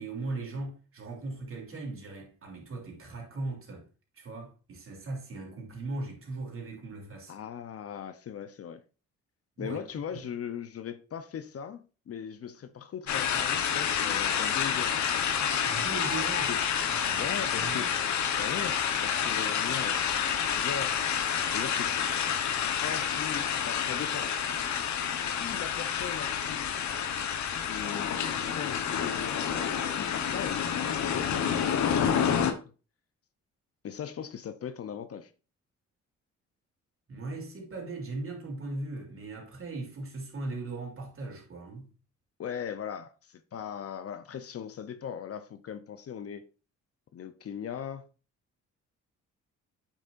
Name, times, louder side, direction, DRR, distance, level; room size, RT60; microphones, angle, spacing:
voice 1, 0.0-3.8 4.2-7.3 9.6-9.8 10.1-10.2 15.6-16.5 16.8-17.9 37.1-41.9, right 2 dB, 45° right, 3.1 m, -38 dB
voice 2, 7.3-8.8 9.6-15.3 16.5-16.6 17.2-17.9 18.4-21.0 21.5-22.1 22.8-24.4 25.0-26.7 27.6-29.5 30.0-30.7 31.0-32.6 33.8-35.3 42.4-46.4 47.1-48.0, left 8 dB, 50° left, 0.8 m, -39 dB
sound 1, 13.1-32.5, left 8 dB, 70° left, 1.1 m, -29 dB
8.3 x 6.3 x 2.6 m
cardioid pair, 90°, 30 cm